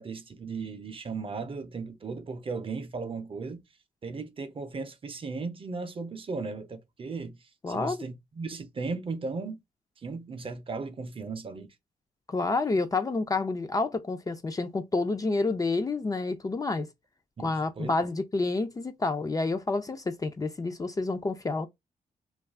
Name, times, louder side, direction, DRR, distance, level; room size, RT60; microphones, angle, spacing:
voice 1, 0.0-3.6 4.0-7.4 7.7-9.6 10.0-11.7 17.4-17.9, right 4 dB, 40° right, 0.6 m, -36 dB
voice 2, 7.6-8.0 12.3-16.9 17.4-21.7, left 3 dB, 25° left, 0.4 m, -29 dB
2.4 x 2.3 x 3.2 m
cardioid pair, 95°, 14 cm